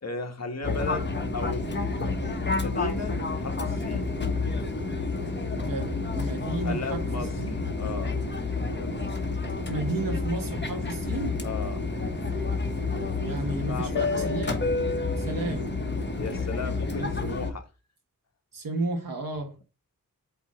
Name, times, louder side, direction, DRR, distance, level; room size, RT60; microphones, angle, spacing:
voice 1, 0.0-1.8 2.4-4.1 6.6-8.2 8.7-9.0 11.4-11.9 13.7-14.4 15.4-15.6 16.2-17.7, left 3 dB, 50° left, 1.3 m, -35 dB
Fixed-wing aircraft airplane, 0.6-17.5, left 3 dB, 30° left, 1.3 m, -29 dB
voice 2, 5.5-7.6 9.7-11.4 12.9-14.7 15.2-15.7 17.0-17.1 18.5-19.5, right 2 dB, 70° right, 1.4 m, -33 dB
8.1 x 3.0 x 4.9 m
wide cardioid pair, 125°, 35 cm